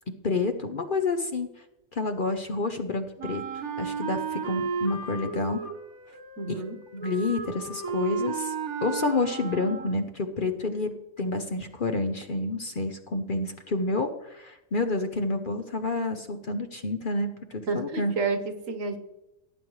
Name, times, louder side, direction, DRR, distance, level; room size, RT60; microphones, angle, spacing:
voice 1, 0.2-1.5 1.9-5.6 6.5-6.6 6.9-8.5 8.8-18.1, left 3 dB, 45° left, 6 dB, 0.8 m, -29 dB
Wind instrument woodwind instrument, 3.2-10.2, right 5 dB, 90° right, 1.7 m, -34 dB
voice 2, 6.4-6.8 17.7-19.0, right 4 dB, 70° right, 7 dB, 1.5 m, -30 dB
17.5 x 8.9 x 3.2 m, 0.94 s
omnidirectional pair, 1.4 m